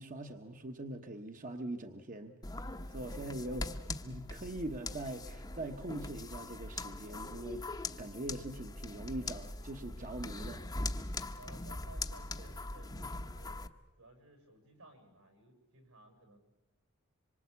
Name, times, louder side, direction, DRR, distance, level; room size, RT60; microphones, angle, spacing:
voice 1, 0.0-2.4 2.9-7.6 8.0-10.7, right 1 dB, 35° right, 5 dB, 1.1 m, -42 dB
sound 1, 2.4-13.7, left 2 dB, 20° left, 0.9 m, -41 dB
voice 2, 3.1-3.4 11.3-13.6 14.0-16.4, right 2 dB, 80° right, 6 dB, 7.1 m, -57 dB
26.0 x 24.0 x 8.3 m, 1.0 s
head